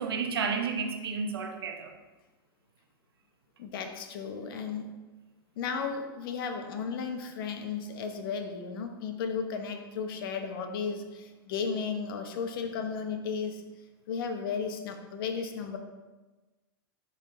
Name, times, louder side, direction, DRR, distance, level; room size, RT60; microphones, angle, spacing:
voice 1, 0.0-1.9 15.3-15.5, right 5 dB, 80° right, 4 dB, 0.9 m, -32 dB
voice 2, 3.6-4.8 5.6-13.6 14.1-15.8, left 5 dB, 65° left, 5 dB, 1.1 m, -34 dB
11.5 x 4.1 x 3.2 m, 1.2 s
hypercardioid pair, 100°, 12 cm